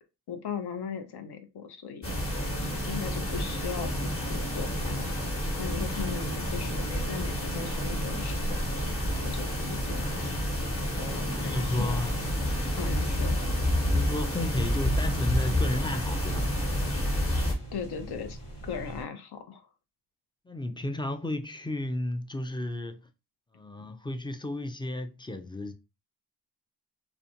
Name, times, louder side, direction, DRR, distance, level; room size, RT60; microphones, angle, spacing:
voice 1, 0.3-2.2 2.7-5.2 5.5-8.6 9.2-10.3 11.0-12.0 12.8-13.4 17.7-19.7, left 6 dB, 65° left, 0.7 m, -38 dB
sound 1, 2.0-17.5, left 1 dB, 30° left, 1.1 m, -29 dB
sound 2, 4.5-19.0, right 1 dB, 80° left, 1.4 m, -41 dB
voice 2, 11.1-12.2 12.8-13.0 13.9-16.5 20.5-23.1 23.5-25.7, left 1 dB, 10° left, 0.4 m, -33 dB
2.4 x 2.2 x 2.8 m
cardioid pair, 50°, 42 cm